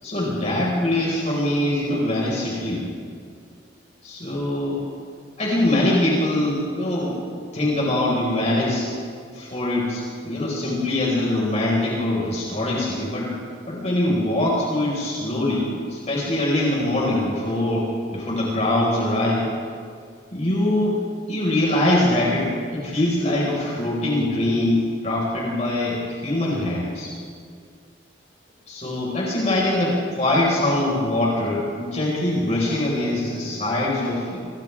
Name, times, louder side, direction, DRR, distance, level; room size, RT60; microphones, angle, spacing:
voice 1, 0.0-2.8 4.0-4.8 5.4-7.1 7.5-8.9 9.3-13.3 13.7-19.5 20.3-21.0 21.3-27.1 28.7-34.4, left 1 dB, 40° left, -4 dB, 5.4 m, -23 dB
29.5 x 27.0 x 3.7 m, 2.2 s
head